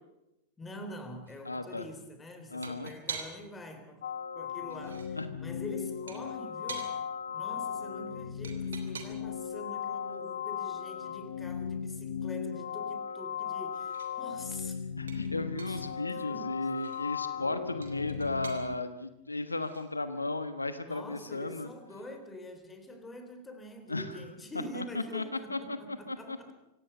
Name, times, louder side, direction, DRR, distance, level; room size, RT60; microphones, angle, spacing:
voice 1, 0.6-4.0 4.3-7.0 7.3-14.8 15.7-16.7 20.8-26.5, left 1 dB, 15° left, 8 dB, 3.6 m, -45 dB
sound 1, 1.3-1.4 2.6-3.6 4.5-5.1 6.1-7.0 8.4-9.4 11.1-11.2 11.6-11.7 12.0-13.5 13.7-14.2 15.1-15.9 16.7-17.0 17.8-18.7 19.5-19.9, right 6 dB, 70° right, 3.0 m, -45 dB
voice 2, 1.4-1.8 2.5-2.9 5.2-5.3 15.0-21.7 23.9-24.2 24.7-25.2 25.5-26.4, left 2 dB, 80° left, 11 dB, 1.2 m, -35 dB
sound 2, 4.0-18.8, left 7 dB, 65° left, 0.8 m, -37 dB
26.0 x 17.0 x 6.8 m, 0.88 s
figure-of-eight pair, 90°, 0 cm